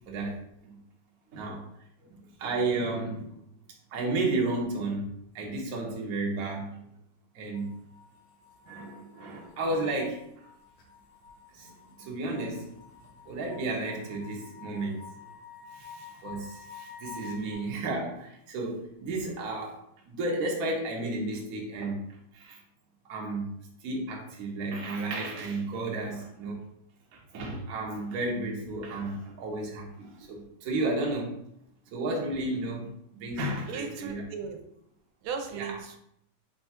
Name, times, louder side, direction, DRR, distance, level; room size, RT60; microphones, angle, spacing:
voice 1, 1.3-1.6 2.4-3.4 3.9-6.8 7.3-7.7 8.6-10.5 11.5-11.7 12.0-12.7 13.3-15.0 15.7-19.8 20.1-22.0 22.3-22.6 23.1-23.5 23.8-26.6 27.1-31.4 31.9-34.2 35.5-35.7, right 2 dB, 60° right, -1 dB, 1.0 m, -32 dB
sound 1, 7.5-17.5, left 6 dB, 75° left, 1.7 m, -49 dB
voice 2, 33.7-34.6 35.2-36.0, right 6 dB, 80° right, 5 dB, 1.4 m, -36 dB
3.8 x 2.3 x 4.2 m, 0.76 s
omnidirectional pair, 2.3 m